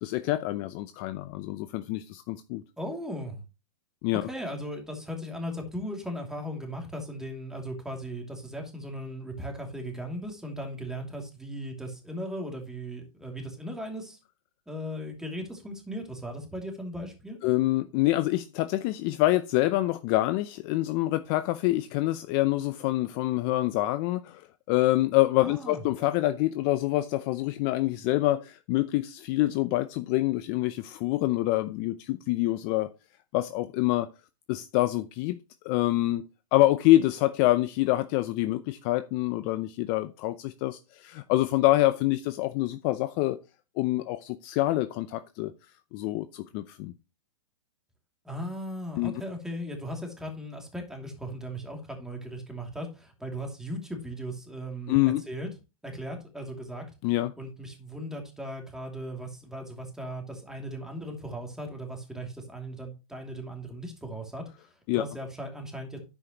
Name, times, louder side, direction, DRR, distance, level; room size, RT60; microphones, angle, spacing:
voice 1, 0.0-2.6 4.0-4.2 17.4-32.9 33.3-34.1 34.5-35.4 35.6-36.2 36.5-43.4 43.8-45.5 45.9-46.9 49.0-49.1 54.9-55.2 57.0-57.3 64.9-65.0, left 17 dB, 35° left, 0.6 m, -26 dB
voice 2, 2.8-3.4 4.2-14.2 14.7-17.4 25.4-25.8 48.2-55.5 55.8-56.8 57.4-66.0, equal, 5° right, 2.7 m, -37 dB
10.0 x 7.8 x 3.0 m
hypercardioid pair, 135°, 19 cm